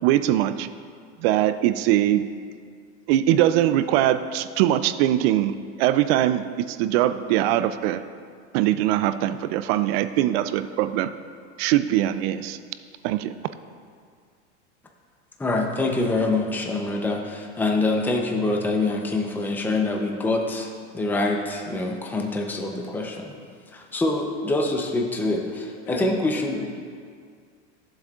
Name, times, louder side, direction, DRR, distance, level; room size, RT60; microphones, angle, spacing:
voice 1, 0.0-0.7 1.2-2.3 3.1-8.0 8.5-11.1 11.6-12.6 13.0-13.3, right 12 dB, 60° right, 13 dB, 0.5 m, -22 dB
voice 2, 15.4-23.3 23.7-26.6, left 2 dB, 5° left, 1 dB, 0.7 m, -25 dB
voice 3, 25.8-26.7, left 4 dB, 80° left, -5 dB, 2.5 m, -38 dB
14.5 x 7.5 x 2.4 m, 2.1 s
supercardioid pair, 120°, 35 cm